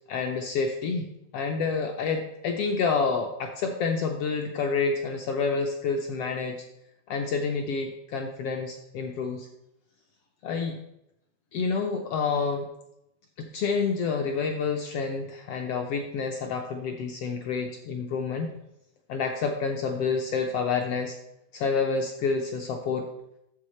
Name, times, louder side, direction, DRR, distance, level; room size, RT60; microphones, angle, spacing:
voice 1, 0.1-1.1 1.3-6.6 7.1-9.5 10.4-10.8 11.5-12.7 13.4-18.5 19.1-21.2 21.5-23.1, left 5 dB, 75° left, 3 dB, 1.4 m, -28 dB
9.7 x 7.0 x 4.3 m, 0.81 s
omnidirectional pair, 3.5 m